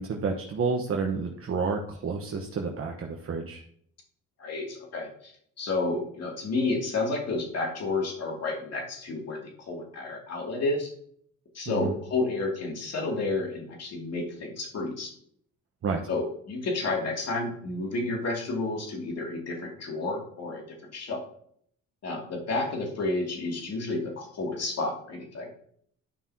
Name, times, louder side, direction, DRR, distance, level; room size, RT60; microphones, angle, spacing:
voice 1, 0.0-3.6 11.7-11.9 15.8-16.1, right 4 dB, 50° right, 1 dB, 1.2 m, -30 dB
voice 2, 4.4-5.3 5.6-9.4 9.7-10.9 11.5-15.1 16.1-20.6 20.9-21.2 22.0-25.5, left 3 dB, 55° left, 0 dB, 2.7 m, -31 dB
11.5 x 5.6 x 2.9 m, 0.63 s
cardioid pair, 90°, 30 cm